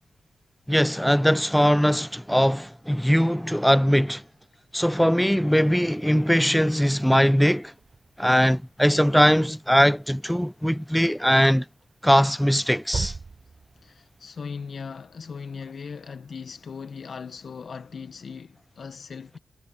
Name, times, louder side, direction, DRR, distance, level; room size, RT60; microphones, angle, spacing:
voice 1, 0.7-4.2 4.7-7.7 8.2-11.6 12.0-13.1, equal, ahead, 0.5 m, -20 dB
sound 1, 5.5-17.7, right 4 dB, 50° right, 5.0 m, -44 dB
voice 2, 13.8-19.4, left 5 dB, 65° left, 1.2 m, -38 dB
cardioid pair, 55°, 0 cm